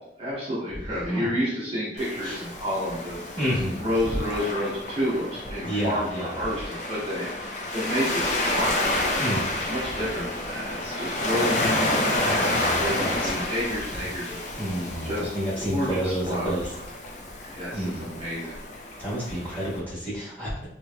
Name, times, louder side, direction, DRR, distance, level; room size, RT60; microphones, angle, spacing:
voice 1, 0.0-3.4 3.8-8.9 9.7-14.4 15.0-16.6 17.5-18.6, equal, 35° right, -9 dB, 0.8 m, -30 dB
Waves surf, 2.0-19.8, left 1 dB, 40° left, 0.4 m, -30 dB
voice 2, 3.4-3.8 5.6-6.3 9.2-9.5 12.4-13.3 14.6-16.7 17.7-18.1 19.0-20.7, equal, 10° left, -11 dB, 1.3 m, -30 dB
2.9 x 2.7 x 2.2 m, 0.78 s
head